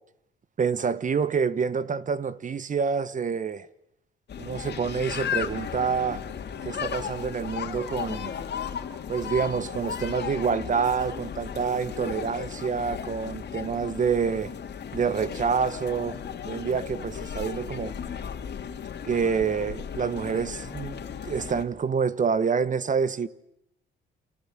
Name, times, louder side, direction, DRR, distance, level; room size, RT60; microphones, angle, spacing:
voice 1, 0.6-3.7 4.4-6.2 6.6-8.3 9.1-14.5 14.9-16.2 16.4-17.9 19.0-23.3, right 6 dB, 40° right, 1.2 m, -27 dB
sound 1, 4.3-21.6, left 8 dB, 60° left, 2.7 m, -35 dB
28.5 x 27.5 x 7.5 m
cardioid pair, 90°, 20 cm